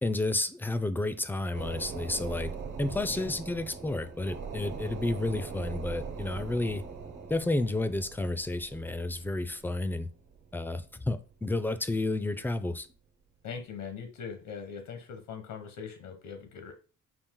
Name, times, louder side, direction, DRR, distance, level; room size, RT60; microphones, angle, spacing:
voice 1, 0.0-2.5 2.8-6.8 7.3-10.1 10.5-12.9, left 2 dB, 5° left, 0.3 m, -31 dB
sound 1, 1.5-11.5 11.9-12.0, right 5 dB, 65° right, 1.2 m, -41 dB
voice 2, 13.4-16.7, left 6 dB, 90° left, 0.9 m, -41 dB
5.5 x 2.5 x 3.6 m
cardioid pair, 115°, 32 cm